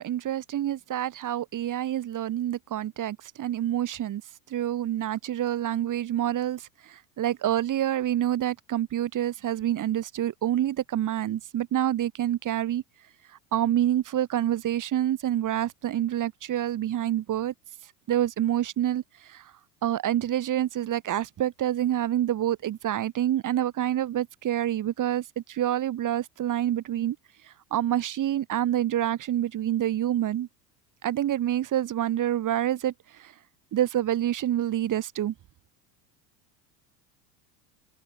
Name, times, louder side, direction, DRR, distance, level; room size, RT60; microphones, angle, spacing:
voice 1, 0.0-4.2 4.5-12.8 13.5-17.5 18.1-19.0 19.3-19.4 19.8-27.2 27.7-30.5 31.0-32.9 33.2-33.3 33.7-35.3, right 12 dB, 40° right, 4.4 m, -27 dB
hypercardioid pair, 80°, 49 cm